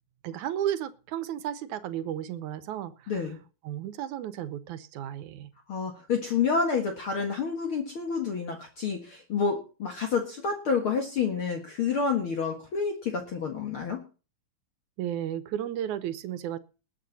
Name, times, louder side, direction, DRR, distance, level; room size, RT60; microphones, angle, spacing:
voice 1, 0.2-3.2 3.6-5.5 15.0-16.6, right 11 dB, 90° right, 13 dB, 2.3 m, -33 dB
voice 2, 3.1-3.4 5.7-14.0, left 5 dB, 50° left, 3 dB, 2.3 m, -29 dB
21.0 x 8.3 x 4.1 m, 0.34 s
omnidirectional pair, 3.3 m